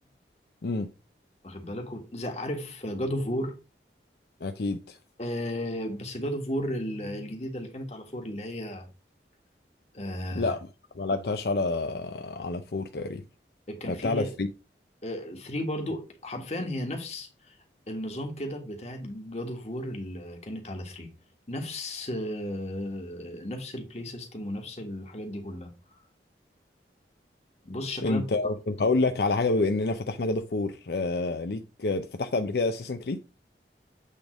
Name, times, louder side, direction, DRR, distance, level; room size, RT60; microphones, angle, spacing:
voice 1, 1.4-3.6 5.2-8.9 9.9-10.5 13.7-14.3 15.0-17.5 17.9-21.1 21.5-25.7 27.6-28.2, left 1 dB, 35° left, 1.6 m, -34 dB
voice 2, 4.4-5.0 10.3-10.6 11.0-13.2 13.9-14.5 28.0-33.3, left 3 dB, 65° left, 0.6 m, -28 dB
8.5 x 3.5 x 4.9 m
head